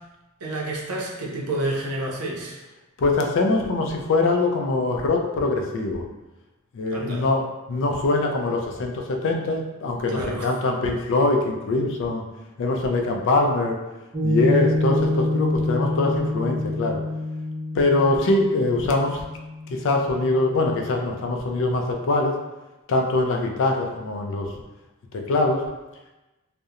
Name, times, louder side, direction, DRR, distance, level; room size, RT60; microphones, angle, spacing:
voice 1, 0.4-2.6 6.9-7.3 10.1-10.5, right 1 dB, 80° right, -2 dB, 0.5 m, -29 dB
voice 2, 3.0-6.0 6.7-7.4 7.7-12.2 12.6-13.8 14.2-17.0 17.7-19.2 19.8-22.3 22.9-24.5 25.1-25.6, left 2 dB, 60° left, 2 dB, 0.4 m, -23 dB
Piano, 14.1-20.8, left 2 dB, 20° right, 0.5 m, -27 dB
2.4 x 2.0 x 2.7 m, 1.1 s
head